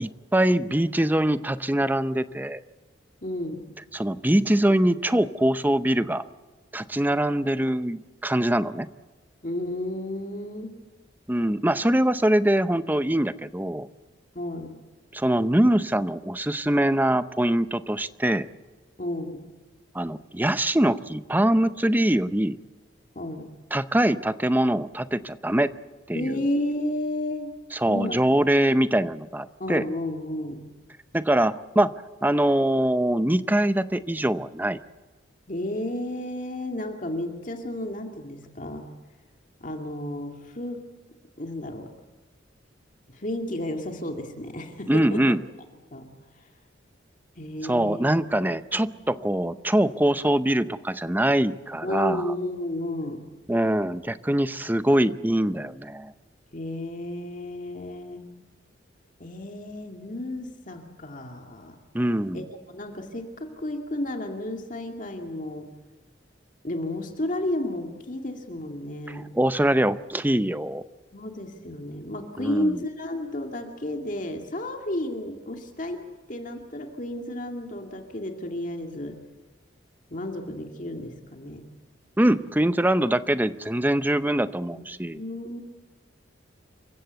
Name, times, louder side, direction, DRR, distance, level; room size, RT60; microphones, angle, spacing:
voice 1, 0.0-2.6 3.9-6.2 6.7-8.9 11.3-13.9 15.1-18.5 19.9-22.6 23.7-25.7 26.1-26.4 27.7-29.9 31.1-31.9 32.2-34.8 44.9-45.4 47.6-52.3 53.5-56.1 61.9-62.4 69.1-70.8 72.4-72.8 82.2-85.2, right 1 dB, 10° right, 13 dB, 0.6 m, -23 dB
voice 2, 3.2-3.7 9.4-10.8 14.4-14.8 19.0-19.5 23.2-23.6 26.1-27.6 27.9-28.3 29.6-30.7 35.5-38.9 39.6-41.0 41.4-41.9 43.1-45.4 45.9-46.1 47.4-48.8 51.8-53.3 56.5-58.5 59.2-61.8 62.3-65.7 66.6-69.3 71.1-76.0 76.3-79.2 80.1-81.7 84.7-84.8 85.1-85.6, left 1 dB, 40° left, 4 dB, 2.2 m, -32 dB
27.5 x 16.0 x 8.2 m, 1.3 s
head